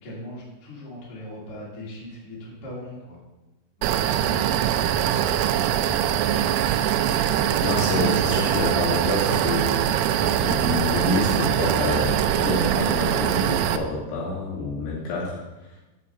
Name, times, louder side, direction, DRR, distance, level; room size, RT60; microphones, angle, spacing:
voice 1, 0.0-3.2 3.8-4.8 5.1-6.6, left 1 dB, 30° left, -6 dB, 2.5 m, -39 dB
sound 1, 3.8-13.8, right 10 dB, 80° right, 2.5 m, -23 dB
voice 2, 7.6-15.4, left 2 dB, 80° left, -6 dB, 4.4 m, -27 dB
7.6 x 5.1 x 6.9 m, 1.1 s
omnidirectional pair, 4.8 m